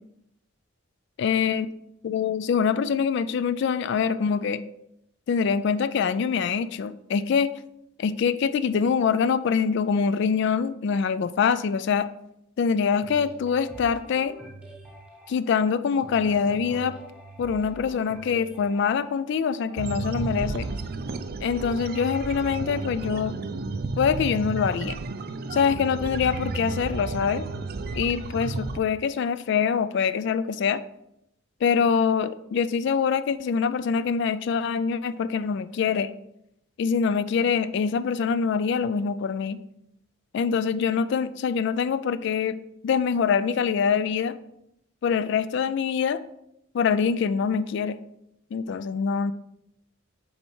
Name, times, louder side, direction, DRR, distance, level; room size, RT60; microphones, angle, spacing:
voice 1, 1.2-1.7 2.0-4.6 5.3-7.5 8.0-12.1 12.6-14.4 15.3-16.9 17.4-20.7 21.4-23.3 24.0-25.0 25.5-27.5 28.0-30.8 31.6-36.1 36.8-39.6 40.3-42.6 42.8-44.3 45.0-46.2 46.7-48.0 48.5-49.3, left 6 dB, 60° left, 13 dB, 0.3 m, -24 dB
sound 1, 13.0-20.9, right 1 dB, 5° right, 1.0 m, -45 dB
sound 2, 19.8-28.8, right 3 dB, 50° right, 0.4 m, -32 dB
6.6 x 4.0 x 4.7 m, 0.80 s
head